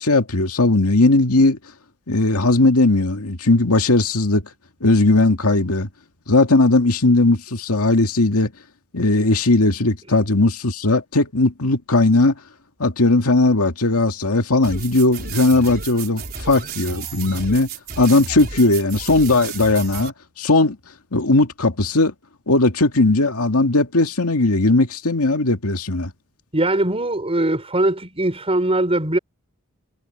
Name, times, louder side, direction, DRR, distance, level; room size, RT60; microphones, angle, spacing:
voice 1, 0.0-1.6 2.1-4.4 4.8-5.9 6.3-8.5 8.9-12.4 12.8-17.7 18.0-20.8 21.1-22.1 22.5-26.1, left 2 dB, 85° left, 2.1 m, -18 dB
sound 1, 14.6-20.1, right 5 dB, 45° right, 4.4 m, -33 dB
voice 2, 26.5-29.2, right 1 dB, 25° right, 6.0 m, -21 dB
head